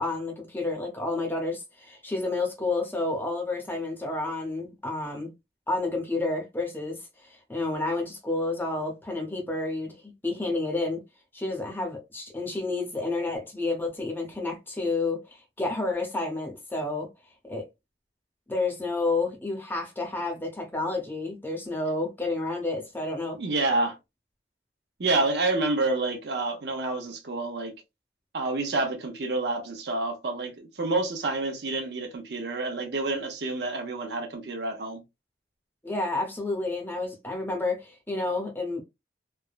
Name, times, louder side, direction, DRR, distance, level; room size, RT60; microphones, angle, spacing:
voice 1, 0.0-5.3 5.7-11.0 11.3-17.1 17.4-17.7 18.5-23.4 35.8-38.8, left 2 dB, 10° left, 0.8 m, -30 dB
voice 2, 23.3-24.0 25.0-27.7 28.3-35.0, right 2 dB, 70° right, 0.7 m, -28 dB
3.3 x 2.1 x 2.4 m
head